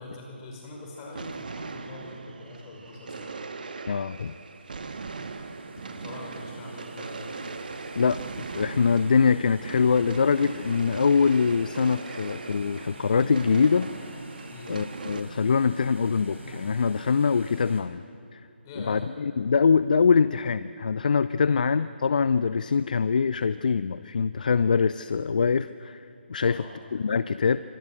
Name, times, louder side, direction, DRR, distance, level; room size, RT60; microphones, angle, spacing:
voice 1, 0.0-3.4 5.9-7.3 14.5-14.7 18.6-19.0 21.4-21.6 26.4-26.8, left 2 dB, 20° left, -1 dB, 5.8 m, -43 dB
sound 1, 1.0-15.2, right 4 dB, 50° right, 1.5 m, -39 dB
voice 2, 3.9-4.3 8.0-13.9 14.7-18.0 18.3-18.4 18.8-26.0 26.3-26.6 26.9-27.6, left 5 dB, 45° left, 15 dB, 0.5 m, -23 dB
sound 2, 4.4-17.8, right 1 dB, 80° right, 5.5 m, -46 dB
26.5 x 25.5 x 6.4 m, 2.6 s
figure-of-eight pair, 145°, 6 cm